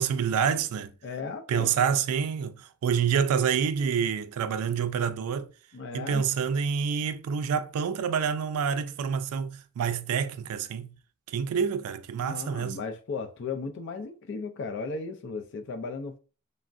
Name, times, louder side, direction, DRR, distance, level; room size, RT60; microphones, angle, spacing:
voice 1, 0.0-0.9 1.5-2.6 2.8-5.5 5.9-10.9 11.3-12.8, right 7 dB, 75° right, 0.3 m, -27 dB
voice 2, 1.0-1.7 5.7-6.2 12.2-16.2, left 4 dB, 55° left, 0.4 m, -36 dB
3.4 x 2.1 x 2.5 m
head